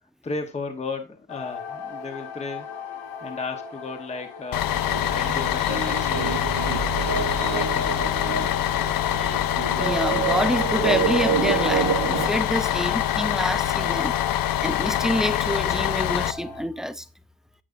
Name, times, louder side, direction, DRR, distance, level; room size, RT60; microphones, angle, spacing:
voice 1, 0.2-2.7 3.2-4.7 5.1-8.9, left 4 dB, 20° left, 1.1 m, -35 dB
sound 1, 1.3-16.6, left 5 dB, 85° left, 2.1 m, -39 dB
Bus, 4.5-16.3, left 12 dB, 70° left, 0.6 m, -25 dB
sound 2, 4.7-12.3, right 9 dB, 75° right, 1.6 m, -28 dB
voice 2, 9.8-14.2 14.6-17.1, equal, ahead, 0.5 m, -27 dB
10.0 x 8.4 x 2.6 m
wide cardioid pair, 160°, 35 cm